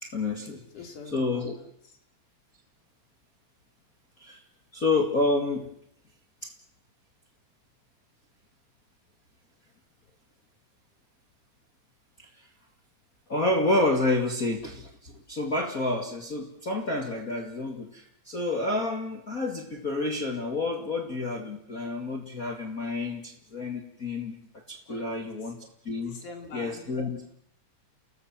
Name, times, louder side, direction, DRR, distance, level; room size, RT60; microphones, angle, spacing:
voice 1, 0.0-0.6 1.1-1.5 4.2-4.4 4.7-5.7 6.4-6.5 12.4-12.5 13.3-24.4 24.7-26.2 26.5-27.3, left 2 dB, 30° left, 2 dB, 2.3 m, -29 dB
voice 2, 0.7-2.0 24.9-25.5 26.1-26.9, left 3 dB, 80° left, 3 dB, 5.1 m, -45 dB
30.0 x 19.0 x 7.5 m, 0.72 s
omnidirectional pair, 3.5 m